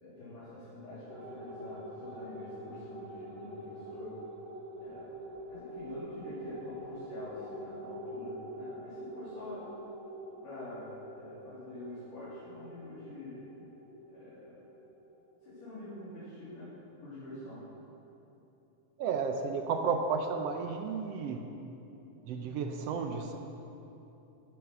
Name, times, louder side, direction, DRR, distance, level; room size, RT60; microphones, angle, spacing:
voice 1, 0.0-4.1 4.8-5.2 5.5-9.7 10.4-10.8 11.1-13.5 14.1-14.6 15.4-17.7, left 1 dB, 80° left, -12 dB, 4.7 m, -46 dB
sound 1, 1.1-15.9, right 1 dB, 5° left, 3.0 m, -45 dB
voice 2, 19.0-21.4 22.2-23.4, right 5 dB, 80° right, 5 dB, 1.4 m, -32 dB
13.5 x 11.0 x 6.0 m, 3.0 s
omnidirectional pair, 3.7 m